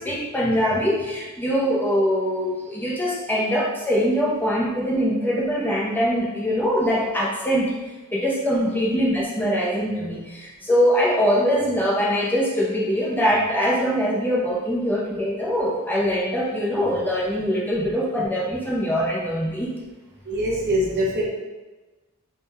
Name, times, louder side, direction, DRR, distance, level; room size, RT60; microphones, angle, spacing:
voice 1, 0.0-7.7 8.1-19.7, equal, 10° left, -5 dB, 0.6 m, -23 dB
voice 2, 20.3-21.2, equal, 50° right, -3 dB, 0.8 m, -23 dB
3.5 x 2.2 x 4.1 m, 1.2 s
head